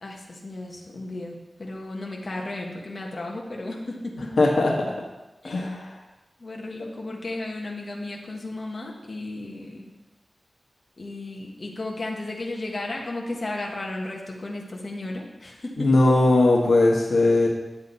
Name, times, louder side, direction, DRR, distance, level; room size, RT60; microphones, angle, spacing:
voice 1, 0.0-4.4 5.4-5.7 6.4-9.9 11.0-15.9, left 2 dB, 45° left, -1 dB, 1.5 m, -34 dB
voice 2, 4.4-4.9 5.4-5.9 6.8-6.9 15.8-17.5, left 2 dB, 90° left, 0 dB, 1.4 m, -19 dB
9.5 x 7.9 x 4.1 m, 1.1 s
wide cardioid pair, 100°, 0 cm